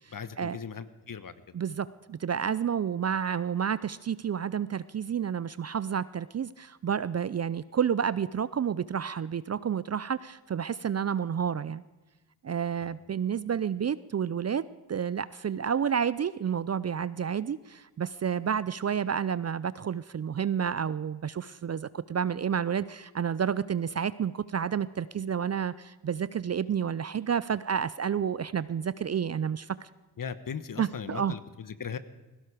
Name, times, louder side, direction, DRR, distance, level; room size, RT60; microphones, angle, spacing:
voice 1, 0.1-1.6 12.8-13.0 30.2-32.0, left 6 dB, 45° left, 13 dB, 1.2 m, -38 dB
voice 2, 1.5-11.8 12.4-14.6 14.9-29.9 30.8-31.3, right 8 dB, 35° right, 17 dB, 0.5 m, -30 dB
17.0 x 16.5 x 5.0 m, 1.2 s
supercardioid pair, 40°, 46 cm